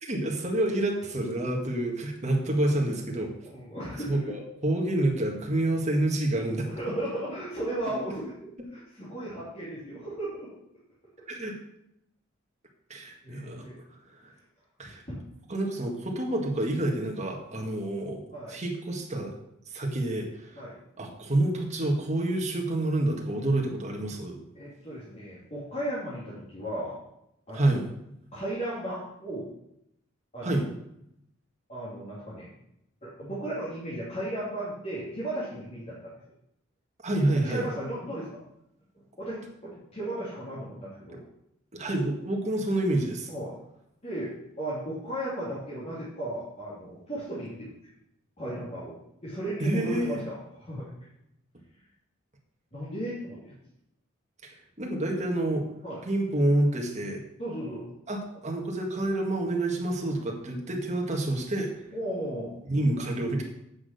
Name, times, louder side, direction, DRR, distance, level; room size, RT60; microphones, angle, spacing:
voice 1, 0.0-3.3 4.1-6.7 11.3-11.5 12.9-13.6 14.8-15.0 15.5-18.2 18.5-19.4 19.7-20.6 21.0-24.4 27.5-27.9 30.4-30.7 37.0-37.7 41.7-43.3 49.6-50.2 54.4-55.7 56.1-57.2 58.1-61.7 62.6-63.4, right 1 dB, 35° right, 1 dB, 1.8 m, -28 dB
voice 2, 3.4-4.3 6.7-10.5 13.2-13.7 15.1-15.2 18.3-18.6 20.6-20.8 24.5-27.0 27.5-27.8 28.3-29.5 30.3-30.6 31.7-32.5 33.0-36.1 37.4-38.4 39.2-41.2 43.3-43.5 44.0-44.3 44.6-47.7 48.4-48.9 49.2-50.9 52.7-53.5 55.8-56.0 57.4-57.8 61.9-62.5, right 1 dB, 35° left, -9 dB, 2.9 m, -35 dB
8.6 x 6.2 x 6.7 m, 0.79 s
head